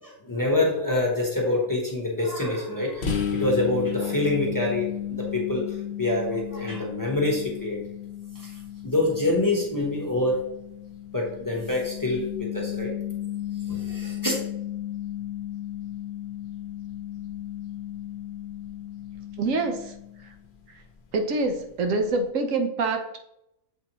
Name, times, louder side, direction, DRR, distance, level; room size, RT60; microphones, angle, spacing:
voice 1, 0.0-7.8 8.3-8.5 8.8-10.4 11.1-12.9 13.7-14.4, left 2 dB, 15° left, -2 dB, 1.0 m, -26 dB
sound 1, 3.0-20.5, left 10 dB, 55° left, 1.0 m, -34 dB
voice 2, 19.4-19.9 21.1-23.2, right 3 dB, 70° right, 5 dB, 1.1 m, -26 dB
7.5 x 4.2 x 3.0 m, 0.81 s
omnidirectional pair, 1.4 m